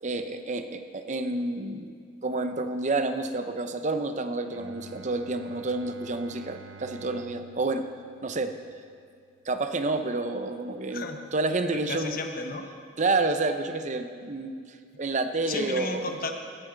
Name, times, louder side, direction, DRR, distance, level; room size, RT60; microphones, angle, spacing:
voice 1, 0.0-1.9 2.2-7.9 8.2-8.6 9.5-11.1 11.3-12.2 13.0-16.1, right 3 dB, 40° right, 8 dB, 0.6 m, -29 dB
Bowed string instrument, 4.5-10.2, right 3 dB, 75° right, 0.7 m, -50 dB
voice 2, 10.9-11.2 11.7-12.6 15.4-16.3, left 3 dB, 45° left, 5 dB, 1.0 m, -33 dB
17.0 x 11.0 x 3.9 m, 2.2 s
head